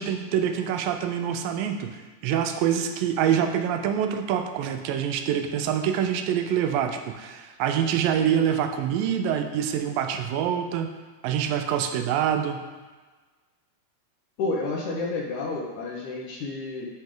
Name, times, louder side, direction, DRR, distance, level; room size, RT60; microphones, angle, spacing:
voice 1, 0.0-2.0 2.2-10.9 11.2-12.6, right 9 dB, 85° right, 7 dB, 2.3 m, -25 dB
voice 2, 14.4-16.9, left 3 dB, 70° left, -1 dB, 2.2 m, -30 dB
10.0 x 5.4 x 3.8 m, 1.3 s
omnidirectional pair, 4.0 m